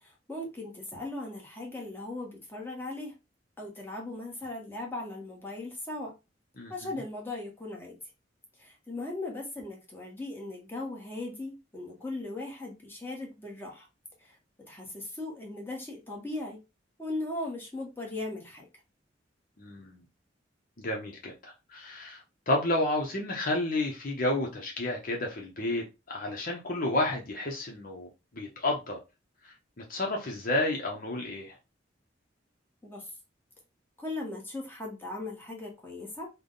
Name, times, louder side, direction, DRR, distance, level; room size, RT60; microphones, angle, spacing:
voice 1, 0.0-3.1 3.6-6.1 6.7-8.0 8.6-13.9 14.2-14.4 14.7-16.6 17.0-18.7 32.8-33.1 34.0-36.3, left 2 dB, 10° left, 1.1 m, -38 dB
voice 2, 19.6-20.0 20.8-28.1 28.3-29.0 29.4-31.5, left 1 dB, 50° left, 0.8 m, -31 dB
3.4 x 2.2 x 3.8 m
head